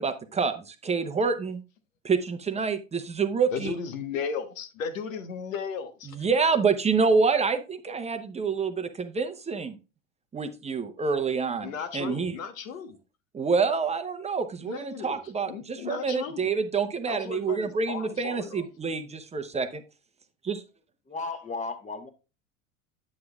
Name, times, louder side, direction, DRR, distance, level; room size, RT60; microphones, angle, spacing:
voice 1, 0.0-1.6 2.0-3.7 6.1-9.8 10.3-12.3 13.3-19.8 20.5-20.6, right 5 dB, 15° right, 0.7 m, -27 dB
voice 2, 3.5-6.2 11.6-13.0 14.6-15.2 15.5-16.5 17.1-18.6, left 6 dB, 80° left, 1.3 m, -35 dB
voice 3, 21.1-22.1, left 3 dB, 20° left, 1.3 m, -34 dB
8.6 x 7.7 x 2.3 m
hypercardioid pair, 95°, 39 cm